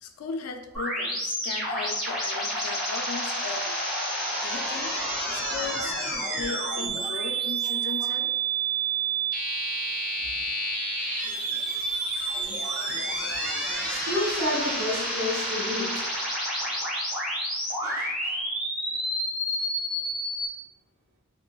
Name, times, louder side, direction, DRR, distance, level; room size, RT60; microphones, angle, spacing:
voice 1, 0.0-3.8 4.4-4.9 5.3-8.3, left 4 dB, 80° left, 4 dB, 0.4 m, -37 dB
sound 1, 0.7-20.5, right 1 dB, ahead, 0.9 m, -29 dB
voice 2, 13.9-16.1 16.7-16.8 17.8-18.4, left 1 dB, 70° right, -2 dB, 0.7 m, -31 dB
3.7 x 2.1 x 2.3 m, 1.1 s
head